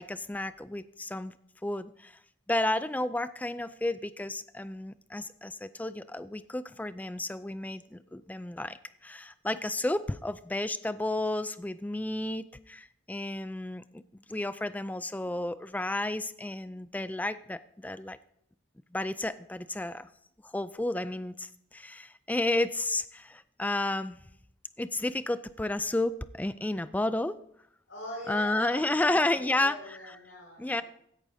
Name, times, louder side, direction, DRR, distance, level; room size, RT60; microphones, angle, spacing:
voice 1, 0.0-1.3 1.6-2.2 2.5-14.0 14.3-18.2 18.9-20.1 20.4-24.2 24.8-27.4 28.3-30.0 30.6-30.8, left 2 dB, 10° left, 14 dB, 0.3 m, -32 dB
voice 2, 7.7-8.3 27.9-30.8, left 1 dB, 85° left, -7 dB, 5.3 m, -43 dB
16.0 x 11.0 x 2.7 m, 0.73 s
head